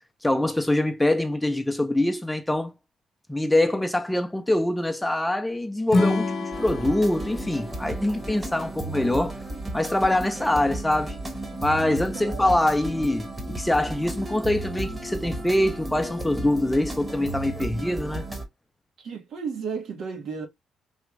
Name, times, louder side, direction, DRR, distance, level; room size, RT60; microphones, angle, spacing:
voice 1, 0.2-2.7 3.3-9.4 9.7-11.2 11.6-13.3 13.6-18.3, left 1 dB, 10° left, 0.5 m, -24 dB
Acoustic guitar / Strum, 5.9-9.2, left 2 dB, 40° left, 1.0 m, -28 dB
sound 1, 6.5-18.4, right 2 dB, 25° right, 1.1 m, -34 dB
voice 2, 12.1-12.4 19.0-20.5, right 5 dB, 70° right, 1.2 m, -33 dB
3.4 x 2.4 x 3.0 m
cardioid pair, 90°, 0 cm